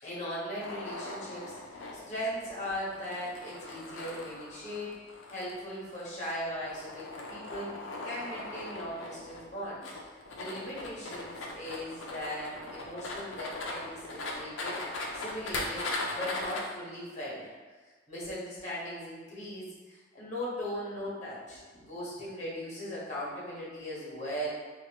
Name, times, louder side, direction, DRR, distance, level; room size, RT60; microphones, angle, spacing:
voice 1, 0.0-4.9 5.3-9.8 10.4-17.5 18.1-24.5, equal, 40° left, -7 dB, 1.2 m, -39 dB
sound 1, 0.6-16.6, left 2 dB, 85° left, 0.6 m, -39 dB
3.8 x 2.5 x 2.9 m, 1.4 s
head